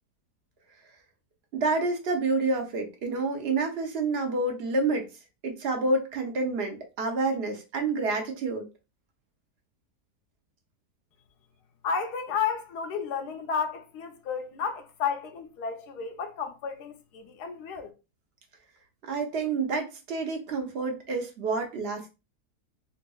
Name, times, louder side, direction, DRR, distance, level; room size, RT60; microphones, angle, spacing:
voice 1, 1.5-5.1 5.4-8.7 19.0-22.1, right 3 dB, 55° right, 0.7 m, -28 dB
voice 2, 11.8-17.9, left 6 dB, 85° left, 1.2 m, -32 dB
4.0 x 2.5 x 2.2 m
omnidirectional pair, 1.7 m